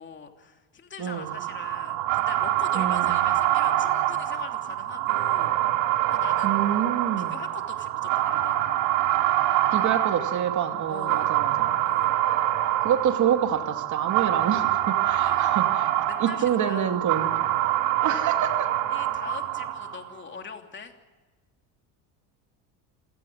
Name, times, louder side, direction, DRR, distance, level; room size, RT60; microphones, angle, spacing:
voice 1, 0.0-5.5 6.1-6.5 7.3-8.6 10.9-11.4 11.8-12.2 15.1-15.6 16.1-17.0 17.7-17.9 18.9-20.9, left 5 dB, 30° left, 4 dB, 3.0 m, -42 dB
voice 2, 1.0-1.3 2.7-3.2 6.4-7.3 9.7-11.8 12.8-15.9 16.2-17.3 18.0-18.7, right 9 dB, 45° right, 6 dB, 2.5 m, -27 dB
sound 1, 1.2-20.1, right 13 dB, 80° right, 2.5 m, -25 dB
27.0 x 17.5 x 8.0 m, 1.3 s
cardioid pair, 120°, 41 cm